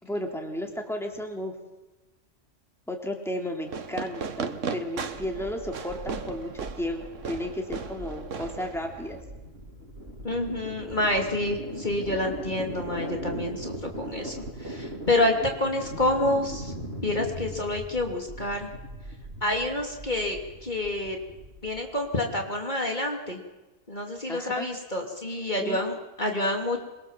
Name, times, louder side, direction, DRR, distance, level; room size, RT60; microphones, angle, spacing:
voice 1, 0.0-1.5 2.9-6.5 6.8-9.2 24.3-24.7 25.6-25.8, left 1 dB, ahead, 2 dB, 3.3 m, -33 dB
Fireworks, 3.7-9.2, right 5 dB, 80° right, 1.6 m, -36 dB
sound 1, 5.1-22.1, right 1 dB, 50° right, 4.4 m, -39 dB
voice 2, 10.2-14.3 14.6-16.7 17.0-18.7 19.4-21.2 21.6-23.4 23.9-26.8, left 1 dB, 35° left, 2 dB, 3.1 m, -28 dB
27.0 x 23.0 x 7.5 m, 1.1 s
omnidirectional pair, 1.3 m